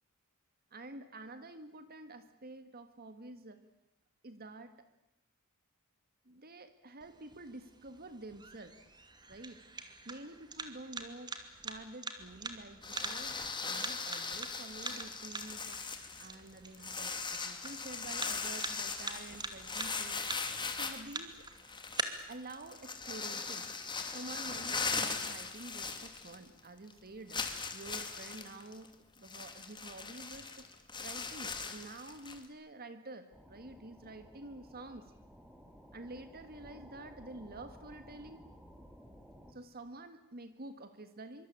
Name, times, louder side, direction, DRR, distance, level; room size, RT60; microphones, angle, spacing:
voice 1, 0.7-3.6 4.2-4.8 6.3-8.7 9.3-9.6 10.1-11.4 11.6-15.8 16.2-20.3 20.8-21.4 22.3-23.7 24.1-27.5 27.7-30.7 31.0-35.1 35.9-38.4 39.5-41.5, right 2 dB, 45° right, 10 dB, 1.7 m, -49 dB
sound 1, 7.0-22.0, right 3 dB, 20° right, 2.4 m, -45 dB
sound 2, 12.8-26.6 26.9-27.0 27.3-32.5, left 4 dB, 20° left, 2.7 m, -39 dB
sound 3, 33.3-39.5, equal, 5° right, 2.9 m, -55 dB
24.5 x 24.5 x 8.8 m, 0.87 s
head